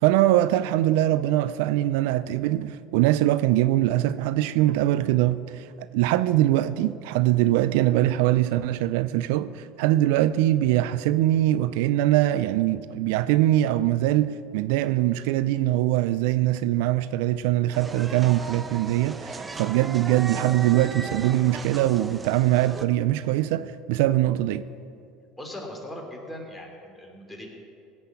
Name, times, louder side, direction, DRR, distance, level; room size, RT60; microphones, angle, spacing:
voice 1, 0.0-24.6, right 14 dB, 75° right, 0.4 m, -22 dB
sound 1, 17.7-22.8, right 3 dB, 20° right, 0.8 m, -37 dB
voice 2, 25.4-27.5, left 1 dB, 10° left, 3.3 m, -39 dB
17.0 x 5.7 x 8.3 m
hypercardioid pair, 85°, 0 cm